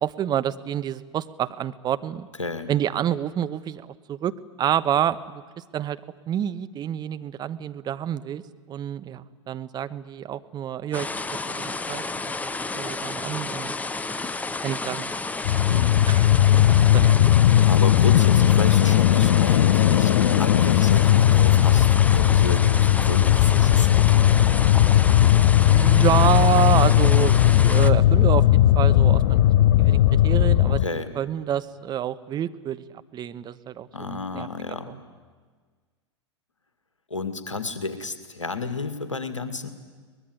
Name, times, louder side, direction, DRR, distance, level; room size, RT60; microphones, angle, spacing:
voice 1, 0.0-2.3 2.7-6.0 6.3-8.4 8.7-11.1 11.5-12.3 12.7-13.8 14.6-15.2 16.1-16.2 16.5-17.2 25.6-29.4 29.8-30.8 31.1-32.8 33.1-34.5 34.9-35.0, right 10 dB, 25° right, 12 dB, 1.1 m, -28 dB
voice 2, 2.4-2.7 15.7-16.0 17.7-24.4 30.8-31.1 33.9-34.9 37.1-39.7, left 3 dB, 85° left, 10 dB, 2.1 m, -32 dB
sound 1, 10.9-27.9, left 3 dB, 10° left, 0.9 m, -31 dB
sound 2, 15.4-30.9, left 12 dB, 60° left, 0.8 m, -17 dB
23.0 x 20.5 x 9.3 m, 1.5 s
figure-of-eight pair, 95°, 16 cm